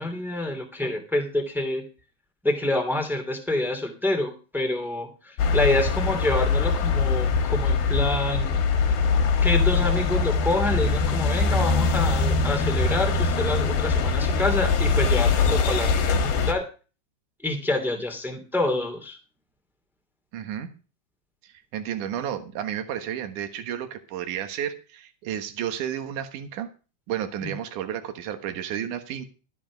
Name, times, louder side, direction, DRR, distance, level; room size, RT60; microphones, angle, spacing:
voice 1, 0.0-1.8 2.4-8.6 9.4-16.6 17.4-19.2 27.4-27.5, left 2 dB, ahead, 4 dB, 1.3 m, -27 dB
sound 1, 5.4-16.5, left 4 dB, 65° left, 3.5 m, -22 dB
voice 2, 20.3-20.7 21.4-26.7 27.1-29.2, right 10 dB, 65° right, 8 dB, 2.1 m, -32 dB
13.0 x 8.7 x 5.1 m, 0.34 s
omnidirectional pair, 5.4 m